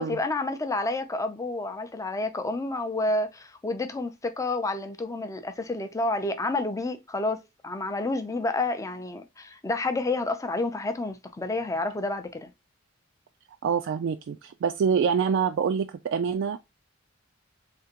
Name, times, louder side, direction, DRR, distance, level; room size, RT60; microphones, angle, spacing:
voice 1, 0.0-12.5, left 2 dB, 15° left, 0.5 m, -29 dB
voice 2, 13.6-16.6, right 6 dB, 65° right, 0.3 m, -26 dB
3.4 x 2.9 x 2.8 m
head